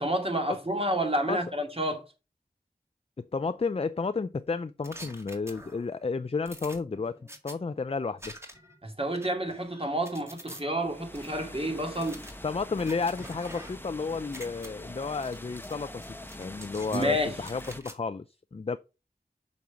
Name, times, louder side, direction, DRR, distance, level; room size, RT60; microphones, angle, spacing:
voice 1, 0.0-2.0 8.8-12.2 16.9-17.4, equal, 35° right, 2.2 m, -29 dB
voice 2, 3.2-7.2 7.4-8.4 12.4-18.2 18.5-18.8, left 4 dB, 35° left, 0.4 m, -32 dB
sound 1, 4.8-5.9 6.5-7.6 8.2-8.8 9.1-10.6 11.2-11.3 11.9-13.9 14.2-14.7 15.2-15.8 16.0-17.1 17.4-18.0, equal, 15° right, 1.8 m, -47 dB
sound 2, 10.8-17.8, left 1 dB, 15° left, 0.9 m, -44 dB
6.3 x 5.3 x 5.8 m
wide cardioid pair, 45°, 17 cm